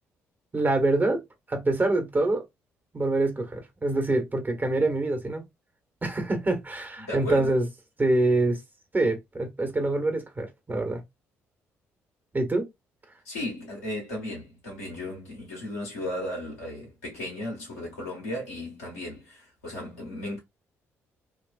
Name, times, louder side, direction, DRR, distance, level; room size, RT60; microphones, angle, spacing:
voice 1, 0.5-1.2 1.5-2.4 2.9-5.4 6.0-7.7 8.0-8.6 8.9-11.0 12.3-12.7, right 2 dB, 25° right, 1.3 m, -25 dB
voice 2, 7.0-7.6 13.2-20.4, left 1 dB, 85° left, 1.5 m, -35 dB
3.1 x 2.4 x 2.5 m
hypercardioid pair, 45°, 7 cm